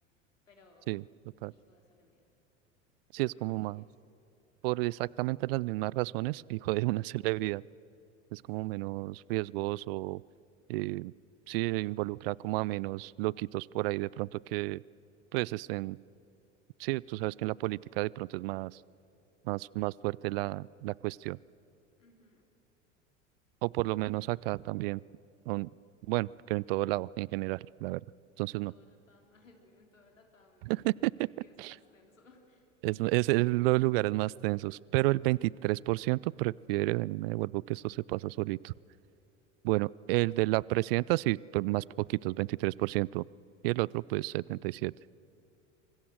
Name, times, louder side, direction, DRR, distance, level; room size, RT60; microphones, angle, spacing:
voice 1, 0.5-2.3 3.2-3.9 8.6-8.8 22.0-22.5 28.5-32.7, left 2 dB, 80° left, 3 dB, 3.5 m, -63 dB
voice 2, 3.1-3.8 4.6-7.6 8.3-10.2 10.7-11.1 11.5-14.8 15.3-16.0 16.8-18.7 19.5-21.4 23.6-25.0 25.5-25.7 26.1-28.0 28.4-28.7 30.6-31.3 31.6-31.8 32.8-38.7 39.6-43.2 43.6-44.9, right 20 dB, 50° right, 25 dB, 0.4 m, -31 dB
26.0 x 24.5 x 6.4 m, 2.8 s
figure-of-eight pair, 75°, 38 cm